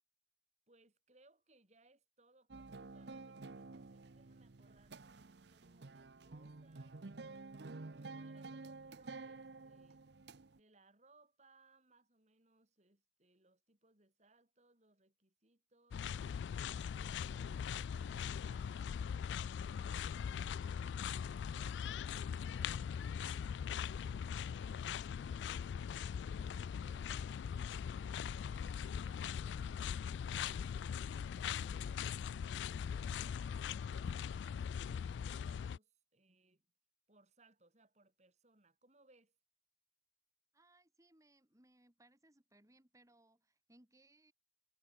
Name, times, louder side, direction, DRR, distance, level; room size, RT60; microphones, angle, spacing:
voice 1, 0.7-7.1 7.9-10.0 10.5-16.0 16.9-18.8 19.1-22.3 22.6-27.1 27.5-30.7 31.3-31.9 32.3-36.7 37.1-39.4, right 2 dB, 40° right, 4.0 m, -70 dB
sound 1, 2.5-10.6, right 3 dB, 75° right, 0.8 m, -51 dB
sound 2, 15.9-35.8, left 7 dB, 85° left, 0.3 m, -41 dB
voice 2, 40.5-44.3, right 1 dB, 20° right, 3.1 m, -68 dB
head